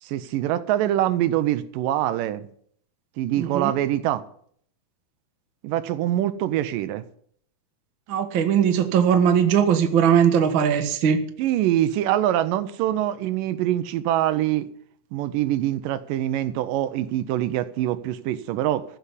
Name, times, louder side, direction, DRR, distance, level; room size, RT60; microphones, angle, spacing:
voice 1, 0.0-2.4 3.2-4.2 5.6-7.0 11.4-14.7 15.1-18.9, right 13 dB, 80° right, 2.3 m, -24 dB
voice 2, 3.4-3.7 8.1-11.2, right 8 dB, 50° right, 1.7 m, -19 dB
15.0 x 7.0 x 9.8 m
omnidirectional pair, 3.9 m